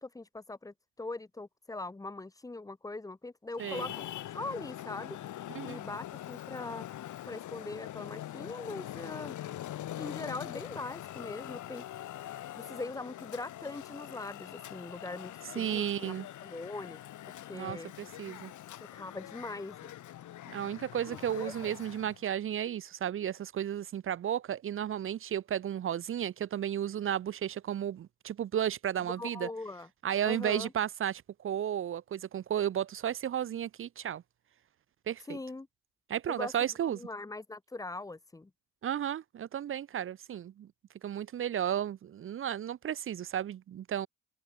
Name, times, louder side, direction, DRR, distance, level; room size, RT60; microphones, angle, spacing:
voice 1, 0.0-4.1 4.3-5.2 5.6-6.9 7.3-9.4 10.0-11.8 12.5-16.1 16.4-17.0 17.3-17.9 18.9-19.9 21.1-21.7 29.2-29.9 30.2-30.7 35.2-35.7 36.3-38.5, left 2 dB, 10° left, 0.8 m, -41 dB
Traffic noise roadway noise, 3.6-22.2, left 13 dB, 75° left, 2.8 m, -43 dB
voice 2, 15.6-16.3 17.5-18.5 20.5-29.5 30.0-34.2 35.1-35.4 36.1-37.0 38.8-40.7 41.0-44.1, right 10 dB, 45° right, 0.5 m, -33 dB
open air
cardioid pair, 90°, 30 cm